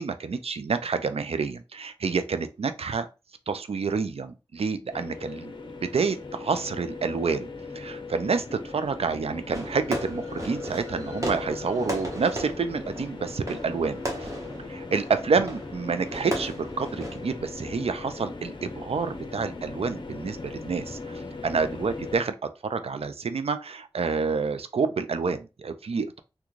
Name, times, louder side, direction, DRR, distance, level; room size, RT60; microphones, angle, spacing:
voice 1, 0.0-3.1 3.5-5.5 5.8-7.5 7.8-14.3 14.7-22.3 22.7-26.2, right 5 dB, 75° right, 0.4 m, -28 dB
sound 1, 4.9-22.2, left 3 dB, 50° left, 0.6 m, -39 dB
Fireworks, 9.5-17.6, right 1 dB, 30° right, 1.1 m, -36 dB
3.7 x 2.2 x 3.0 m
wide cardioid pair, 60°, 10 cm